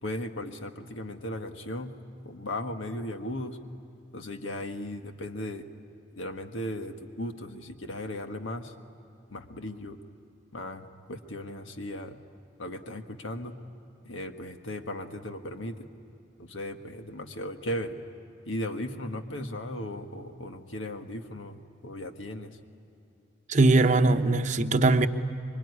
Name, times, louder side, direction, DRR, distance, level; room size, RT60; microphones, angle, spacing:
voice 1, 0.0-1.9 2.2-3.6 4.1-5.6 6.2-8.7 9.3-10.0 10.5-12.2 12.6-13.6 14.0-15.9 16.4-18.0 18.4-22.6, left 1 dB, 90° left, 1.6 m, -36 dB
voice 2, 23.5-25.1, right 2 dB, 40° right, 0.8 m, -21 dB
25.5 x 24.0 x 9.7 m
head